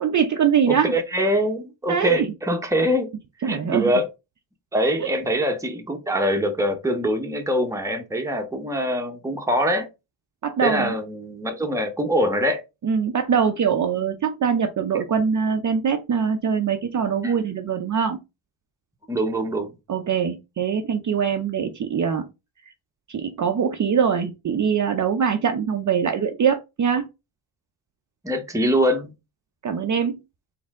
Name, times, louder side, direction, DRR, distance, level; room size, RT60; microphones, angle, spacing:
voice 1, 0.0-1.0 1.9-2.3 3.4-3.9 5.0-5.2 10.4-10.9 12.8-18.2 19.9-22.3 23.1-27.0 29.6-30.2, right 7 dB, 40° right, 0.5 m, -23 dB
voice 2, 0.7-3.1 3.4-4.1 4.7-9.9 10.6-12.6 17.2-17.4 19.1-19.7 28.2-29.1, equal, 5° right, 0.8 m, -24 dB
4.2 x 2.7 x 3.5 m
cardioid pair, 105°, 48 cm